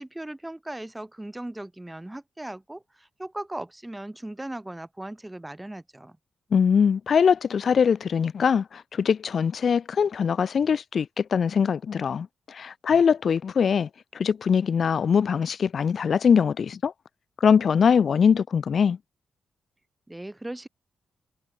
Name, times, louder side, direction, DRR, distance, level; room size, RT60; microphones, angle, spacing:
voice 1, 0.0-6.2 20.1-20.7, right 1 dB, 15° right, 2.5 m, -38 dB
voice 2, 6.5-16.9 17.4-19.0, left 6 dB, 60° left, 0.5 m, -22 dB
supercardioid pair, 40°, 0 cm